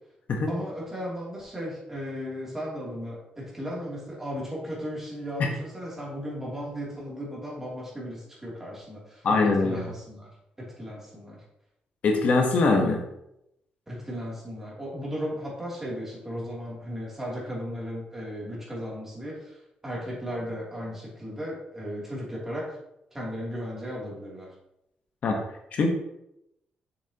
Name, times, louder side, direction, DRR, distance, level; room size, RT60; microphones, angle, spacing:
voice 1, 0.5-10.3 10.6-11.4 13.9-22.8 23.1-24.5, equal, 15° right, -5 dB, 2.8 m, -36 dB
voice 2, 9.2-9.9 12.0-13.0 25.2-25.4 25.7-25.9, left 3 dB, 55° left, 2 dB, 1.1 m, -22 dB
7.1 x 6.9 x 2.9 m, 0.83 s
cardioid pair, 130°, 3 cm